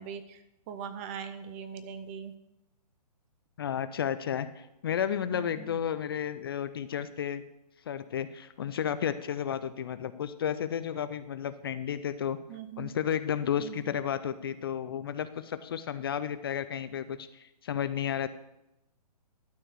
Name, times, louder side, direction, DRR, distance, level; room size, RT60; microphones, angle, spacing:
voice 1, 0.0-2.3 5.3-5.8 12.5-12.9 13.6-14.0, right 7 dB, 20° right, 10 dB, 0.5 m, -41 dB
voice 2, 3.6-7.4 7.9-12.4 12.8-18.3, left 9 dB, 35° left, 12 dB, 0.4 m, -32 dB
12.0 x 4.6 x 6.7 m, 0.89 s
hypercardioid pair, 150°, 21 cm